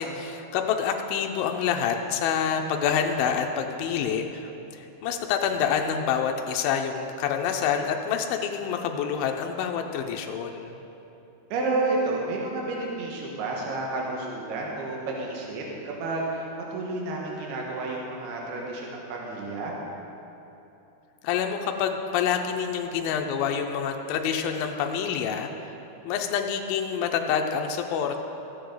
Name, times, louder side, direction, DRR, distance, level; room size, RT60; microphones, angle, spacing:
voice 1, 0.0-10.8 21.2-25.5 26.1-28.2, left 7 dB, 90° left, 3 dB, 2.0 m, -27 dB
voice 2, 11.5-19.7, right 2 dB, 70° right, -2 dB, 3.1 m, -30 dB
14.5 x 8.6 x 3.8 m, 2.9 s
omnidirectional pair, 4.9 m